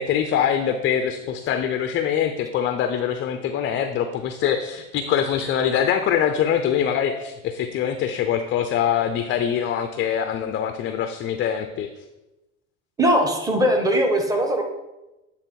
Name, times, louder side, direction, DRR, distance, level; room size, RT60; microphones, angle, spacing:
voice 1, 0.0-11.9, left 8 dB, 30° left, 8 dB, 0.5 m, -23 dB
voice 2, 13.0-14.6, right 1 dB, 10° right, 2 dB, 1.2 m, -20 dB
8.8 x 3.5 x 4.5 m, 1.0 s
hypercardioid pair, 80°, 41 cm